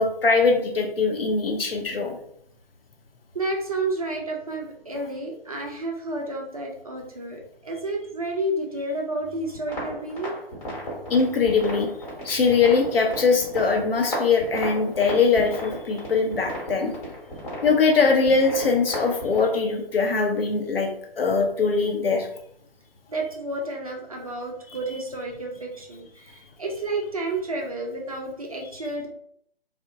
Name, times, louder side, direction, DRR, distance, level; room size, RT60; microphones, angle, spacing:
voice 1, 0.0-2.1 11.1-11.9 12.2-16.9 17.6-20.9 21.2-22.3, left 4 dB, 70° left, 2 dB, 0.6 m, -21 dB
voice 2, 3.3-10.3 23.1-29.1, right 2 dB, 35° right, 0 dB, 0.4 m, -31 dB
sound 1, 9.5-19.4, equal, 35° left, 1.0 m, -35 dB
2.7 x 2.1 x 2.4 m, 0.68 s
figure-of-eight pair, 140°, 31 cm